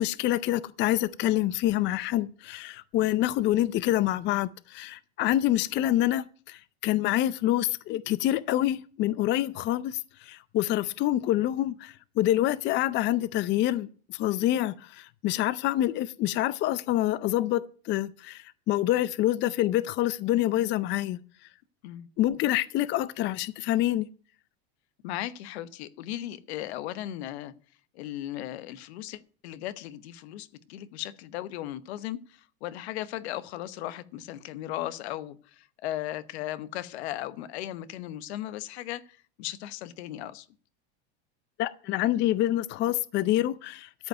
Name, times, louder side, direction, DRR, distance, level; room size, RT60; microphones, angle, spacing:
voice 1, 0.0-21.2 22.2-24.1 41.6-44.1, left 14 dB, 35° left, 0.5 m, -27 dB
voice 2, 25.0-27.5 27.9-32.2 32.6-40.5, left 13 dB, 85° left, 1.1 m, -37 dB
13.0 x 5.4 x 9.1 m
supercardioid pair, 145°, 32 cm